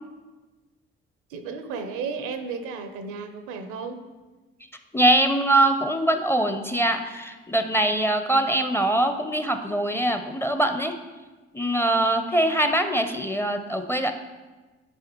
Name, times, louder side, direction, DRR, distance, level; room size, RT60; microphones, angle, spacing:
voice 1, 1.3-4.0, right 5 dB, 70° right, 8 dB, 0.7 m, -33 dB
voice 2, 4.9-10.9 11.5-14.1, right 1 dB, 10° left, 7 dB, 0.6 m, -23 dB
8.7 x 4.9 x 3.0 m, 1.2 s
hypercardioid pair, 45°, 31 cm